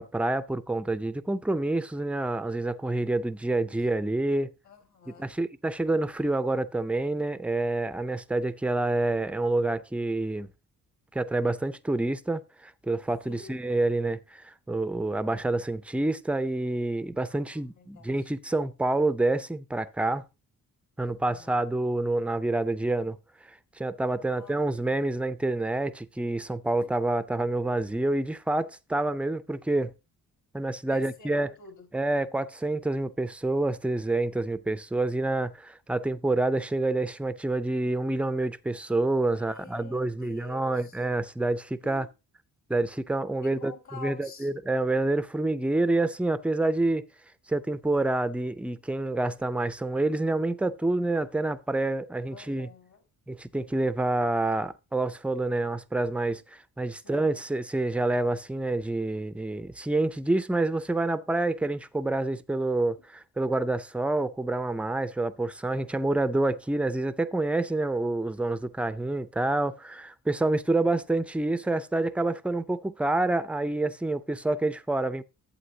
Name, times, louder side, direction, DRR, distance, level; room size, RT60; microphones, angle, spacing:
voice 1, 0.0-4.5 5.1-10.5 11.1-20.2 21.0-23.2 23.5-29.9 30.5-31.5 31.9-42.1 42.7-47.1 47.5-52.7 53.3-75.2, right 2 dB, 5° right, 0.4 m, -28 dB
voice 2, 4.6-5.3 13.2-13.6 17.3-18.3 21.0-21.6 24.2-25.0 26.8-26.9 30.9-31.9 39.3-41.0 41.8-42.1 43.4-44.5 52.3-53.0 57.0-57.4, left 4 dB, 55° left, 2.3 m, -48 dB
11.5 x 8.4 x 2.7 m
wide cardioid pair, 165°, 34 cm